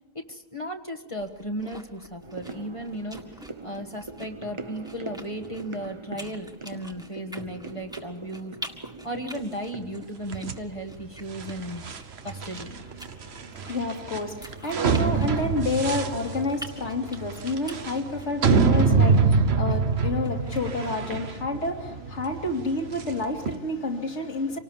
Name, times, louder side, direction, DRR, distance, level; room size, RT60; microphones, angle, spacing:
voice 1, 0.1-12.8, equal, 25° left, 3 dB, 1.4 m, -36 dB
sound 1, 1.2-20.9, equal, 5° right, 1.9 m, -47 dB
sound 2, 2.2-11.6 11.9-12.0, right 3 dB, 25° right, 0.9 m, -42 dB
sound 3, 10.3-23.5, right 4 dB, 55° right, 1.3 m, -26 dB
voice 2, 13.1-24.6, left 2 dB, 60° left, 3 dB, 2.9 m, -29 dB
26.5 x 19.0 x 7.2 m, 1.0 s
omnidirectional pair, 1.3 m